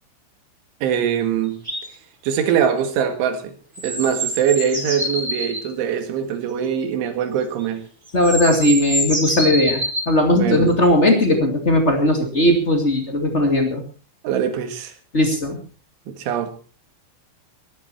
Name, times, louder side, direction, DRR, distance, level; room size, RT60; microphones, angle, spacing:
voice 1, 0.8-1.6 2.2-3.5 3.8-7.8 10.3-10.7 14.2-14.9 16.1-16.5, right 8 dB, 70° right, 4.2 m, -22 dB
sound 1, 1.6-1.9 3.7-5.7 7.6-7.7 8.1-10.1 11.2-11.3, right 1 dB, 15° right, 3.4 m, -26 dB
voice 2, 8.1-13.8 15.1-15.6, left 1 dB, 30° left, 1.3 m, -18 dB
22.5 x 11.0 x 4.4 m
omnidirectional pair, 5.8 m